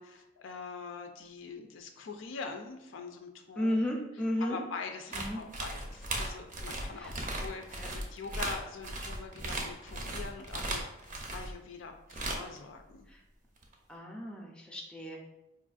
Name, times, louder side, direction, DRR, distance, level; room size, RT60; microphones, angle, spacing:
voice 1, 0.0-3.9 4.4-13.1, left 4 dB, 80° left, 5 dB, 0.4 m, -43 dB
voice 2, 3.6-4.6 5.1-5.4 7.0-7.1 7.8-7.9 13.1-13.2 13.9-15.2, left 1 dB, 5° left, 0 dB, 0.5 m, -33 dB
sound 1, 5.1-11.5 12.1-12.6 13.6-13.7, right 2 dB, 45° right, 0.5 m, -37 dB
4.3 x 2.5 x 2.4 m, 0.89 s
head